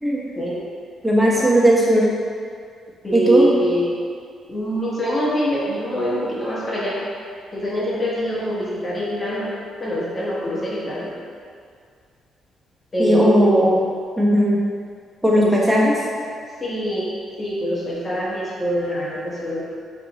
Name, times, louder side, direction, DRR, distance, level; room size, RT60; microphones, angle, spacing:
voice 1, 1.0-2.1 3.1-3.4 13.0-13.8 14.2-14.6 15.2-15.9, equal, 10° right, -5 dB, 1.0 m, -16 dB
voice 2, 3.0-3.9 4.5-7.0 7.5-9.5 9.8-11.1 12.9-13.7 15.4-15.6 16.6-17.1 17.4-19.6, equal, 25° left, -7 dB, 1.3 m, -24 dB
4.8 x 2.5 x 4.0 m, 2.2 s
cardioid pair, 90°, 0 cm